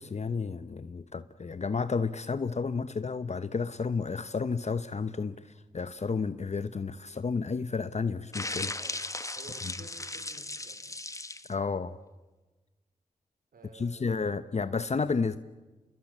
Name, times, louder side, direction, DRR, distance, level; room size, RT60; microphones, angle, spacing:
voice 1, 0.0-8.7 11.5-12.0 13.7-15.4, left 4 dB, 50° left, 12 dB, 0.9 m, -31 dB
sound 1, 8.3-11.5, left 2 dB, 20° left, 1.4 m, -37 dB
voice 2, 9.3-10.8 13.5-14.7, right 3 dB, 80° right, 7 dB, 4.6 m, -53 dB
27.5 x 21.5 x 8.8 m, 1.2 s
cardioid pair, 50°, 15 cm